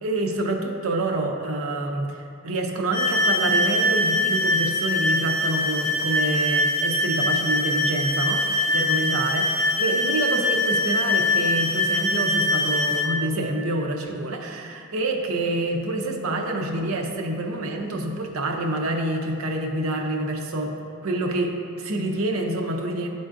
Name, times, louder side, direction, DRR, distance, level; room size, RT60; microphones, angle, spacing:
voice 1, 0.0-20.7 21.0-23.1, right 2 dB, 90° right, 2 dB, 0.7 m, -27 dB
sound 1, 2.9-13.1, left 1 dB, 15° right, 0.6 m, -23 dB
11.0 x 3.9 x 2.5 m, 2.5 s
head